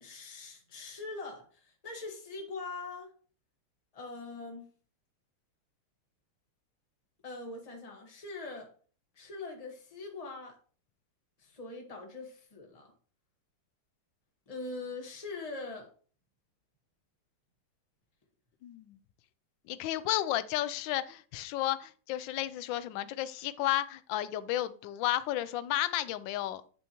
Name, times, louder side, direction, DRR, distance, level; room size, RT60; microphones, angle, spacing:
voice 1, 0.0-3.1 3.9-4.7 7.2-8.7 9.2-10.6 11.4-12.9 14.5-15.9, left 3 dB, 20° left, 1.4 m, -42 dB
voice 2, 18.6-19.0 19.7-26.6, left 13 dB, 75° left, 1.2 m, -32 dB
8.3 x 6.3 x 3.0 m
omnidirectional pair, 2.3 m